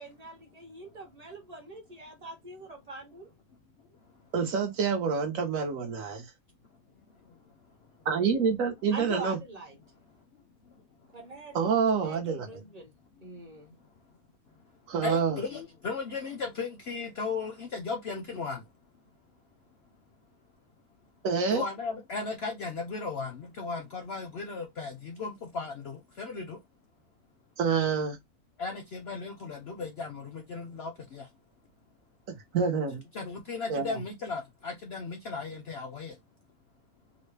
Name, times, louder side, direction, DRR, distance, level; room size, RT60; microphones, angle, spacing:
voice 1, 0.0-3.3 8.9-9.8 11.1-11.6 12.0-12.9 13.2-13.8, right 2 dB, 30° right, 0.8 m, -43 dB
voice 2, 4.3-6.3 8.0-9.4 11.5-12.5 14.9-15.4 21.2-21.6 27.6-28.2 32.3-33.0 33.7-34.0, right 5 dB, 65° right, 1.2 m, -27 dB
voice 3, 10.3-10.8 15.0-18.6 21.5-26.6 28.6-31.3 33.1-36.2, left 4 dB, 60° left, 0.7 m, -36 dB
3.9 x 2.1 x 3.2 m
omnidirectional pair, 1.6 m